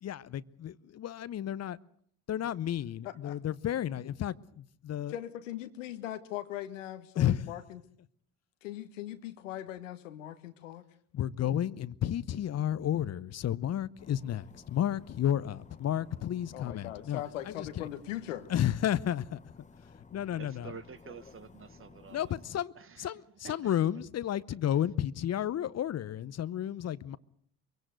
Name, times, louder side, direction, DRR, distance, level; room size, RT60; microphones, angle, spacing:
voice 1, 0.0-1.8 2.3-5.1 7.2-7.5 11.1-17.9 18.5-19.4 20.1-20.7 22.1-22.7 23.0-27.2, left 11 dB, 45° left, 0.8 m, -32 dB
voice 2, 3.0-3.4 5.1-7.8 8.6-10.8 16.5-18.5, left 13 dB, 90° left, 1.4 m, -40 dB
sound 1, 14.0-22.6, left 4 dB, 20° left, 1.2 m, -55 dB
voice 3, 20.4-23.1 23.4-23.8, right 6 dB, 35° right, 1.4 m, -49 dB
23.0 x 17.5 x 7.9 m
hypercardioid pair, 65°, 37 cm